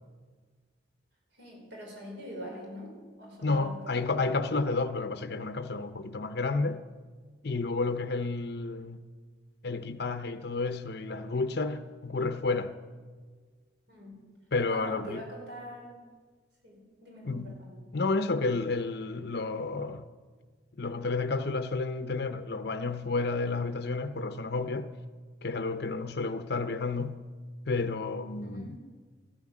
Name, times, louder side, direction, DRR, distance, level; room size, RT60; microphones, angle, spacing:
voice 1, 1.3-4.2 13.9-14.3 14.7-16.0 16.6-17.8 28.4-28.8, equal, 60° right, 4.7 m, -44 dB
voice 2, 3.4-6.8 7.4-9.0 9.6-12.8 14.5-15.2 17.2-17.6 17.9-20.0 20.8-24.9 25.4-27.2 27.7-28.8, left 3 dB, 55° left, 0.7 m, -31 dB
14.5 x 13.5 x 7.3 m
head